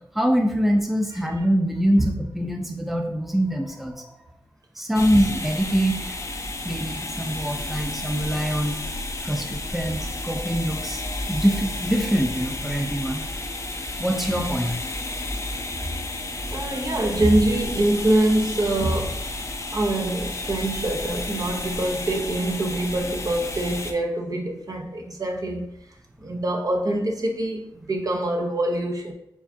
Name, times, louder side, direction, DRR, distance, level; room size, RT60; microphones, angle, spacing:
voice 1, 0.1-4.2 4.8-6.0 6.6-8.8 9.2-11.0 11.3-13.2 14.0-14.8, equal, 5° right, 0.7 m, -24 dB
sound 1, 4.9-23.9, left 2 dB, 40° left, 0.6 m, -32 dB
voice 2, 16.5-19.2 19.7-25.7 26.2-29.1, right 1 dB, 50° right, 0.8 m, -24 dB
4.6 x 3.4 x 2.8 m
cardioid pair, 55°, 8 cm